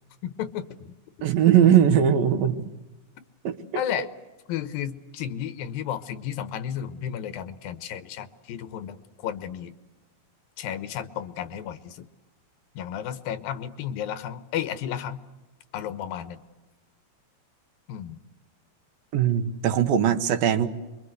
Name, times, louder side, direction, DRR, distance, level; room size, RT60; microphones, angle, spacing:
voice 1, 0.2-0.9 3.8-4.1 4.5-9.7 10.6-12.1 12.8-15.2 15.7-16.4 17.9-18.2, left 9 dB, 90° left, 13 dB, 3.0 m, -33 dB
voice 2, 1.2-2.7 3.4-3.6 19.1-20.7, right 9 dB, 90° right, 9 dB, 3.1 m, -20 dB
28.0 x 23.5 x 8.1 m, 1.1 s
omnidirectional pair, 4.0 m